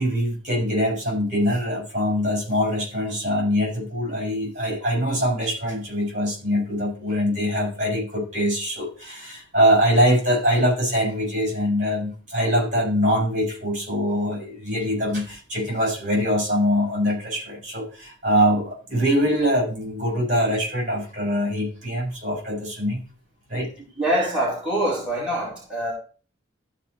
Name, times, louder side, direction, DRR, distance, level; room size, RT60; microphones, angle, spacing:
voice 1, 0.0-23.0 23.5-23.7, equal, 40° right, 6.0 m, -23 dB
voice 2, 24.0-25.9, right 1 dB, 5° right, 4.6 m, -24 dB
14.5 x 5.3 x 4.6 m
head